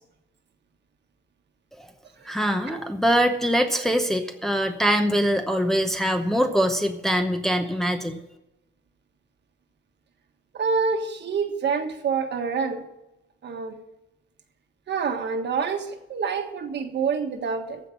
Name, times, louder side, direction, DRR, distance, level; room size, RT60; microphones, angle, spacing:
voice 1, 2.2-8.2, equal, ahead, 4 dB, 0.8 m, -23 dB
voice 2, 10.5-12.8 13.4-13.7 14.9-17.8, right 5 dB, 65° right, 5 dB, 1.5 m, -27 dB
14.5 x 5.9 x 8.4 m, 0.90 s
wide cardioid pair, 170°, 20 cm